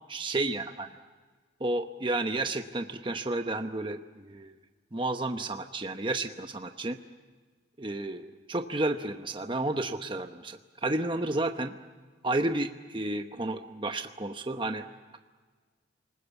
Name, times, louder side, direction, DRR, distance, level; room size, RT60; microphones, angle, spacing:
voice 1, 0.1-0.9 1.6-4.5 4.9-7.0 7.8-11.7 12.2-14.9, right 2 dB, 25° right, 6 dB, 0.9 m, -31 dB
28.0 x 20.0 x 8.3 m, 1.4 s
head